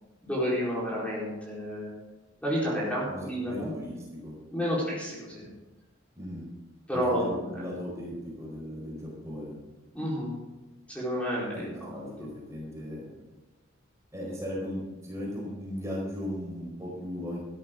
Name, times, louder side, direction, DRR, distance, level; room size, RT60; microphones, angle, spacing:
voice 1, 0.2-1.9 2.4-3.7 4.5-5.5 6.9-7.7 9.9-10.3 10.9-12.1, equal, 5° left, -7 dB, 4.4 m, -30 dB
voice 2, 3.1-4.0 4.2-4.3 6.2-6.5 6.9-9.6 11.5-13.1 14.1-17.4, equal, 15° right, -4 dB, 4.4 m, -37 dB
13.5 x 12.5 x 3.9 m, 1.1 s
head